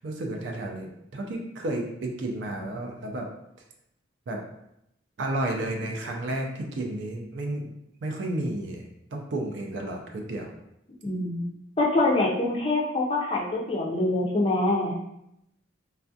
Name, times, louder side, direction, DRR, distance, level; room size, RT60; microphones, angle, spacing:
voice 1, 0.0-3.3 4.3-4.4 5.2-7.6 8.0-8.8 9.1-10.5, right 1 dB, 70° right, 1 dB, 0.4 m, -32 dB
voice 2, 11.0-11.5 11.8-15.0, left 2 dB, 30° left, -3 dB, 0.4 m, -25 dB
3.3 x 2.3 x 2.6 m, 0.82 s
head